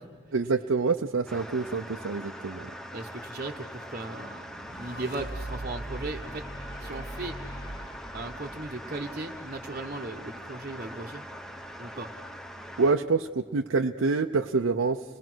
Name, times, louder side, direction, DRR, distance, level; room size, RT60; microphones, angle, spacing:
voice 1, 0.3-2.7 12.8-15.0, right 4 dB, 70° right, 4 dB, 0.6 m, -26 dB
sound 1, 1.3-12.9, equal, ahead, 0.8 m, -42 dB
voice 2, 2.9-4.4 4.8-6.4 6.8-7.3 8.1-11.2 11.8-12.1, right 2 dB, 35° right, -2 dB, 1.0 m, -37 dB
sound 2, 4.4-9.8, right 1 dB, 55° left, 2.2 m, -41 dB
29.5 x 19.5 x 6.2 m, 1.3 s
head